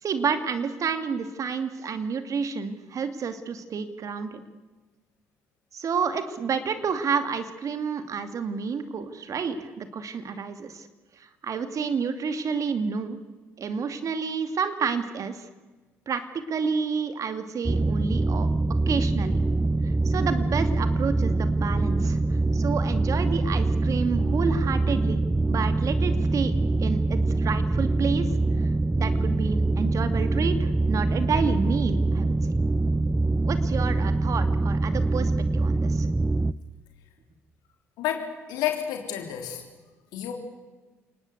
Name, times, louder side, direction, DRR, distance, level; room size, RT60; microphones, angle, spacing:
voice 1, 0.0-4.4 5.7-10.9 11.2-13.2 13.6-15.5 16.1-18.5 18.9-19.4 20.0-22.2 22.5-25.2 25.5-26.5 26.8-28.3 28.9-32.4 33.5-36.1, right 5 dB, 50° right, 9 dB, 2.6 m, -29 dB
sound 1, 17.7-36.5, right 2 dB, 15° right, 0.8 m, -24 dB
voice 2, 38.0-39.6 40.1-40.3, left 10 dB, 75° left, 3 dB, 3.5 m, -30 dB
28.5 x 19.5 x 8.2 m, 1.3 s
hypercardioid pair, 50°, 7 cm